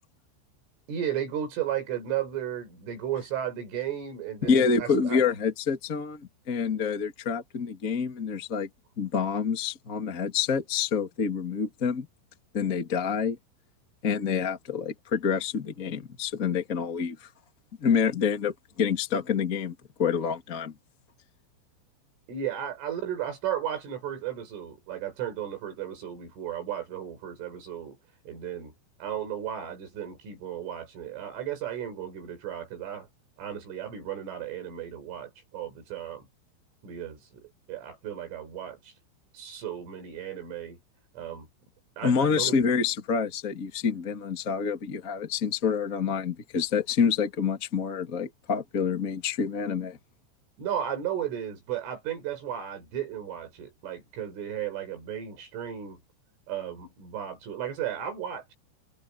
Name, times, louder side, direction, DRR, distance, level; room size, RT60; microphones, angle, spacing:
voice 1, 0.9-5.2 22.3-28.0 28.3-28.7 29.0-33.1 33.4-36.3 36.8-38.9 39.3-40.8 41.1-41.5 42.0-42.6 50.6-56.0 56.5-58.5, right 10 dB, 70° right, 8.1 m, -34 dB
voice 2, 4.4-8.7 9.0-12.1 12.5-13.4 14.0-17.3 17.8-20.7 42.0-50.0, left 6 dB, 50° left, 0.9 m, -27 dB
omnidirectional pair, 5.9 m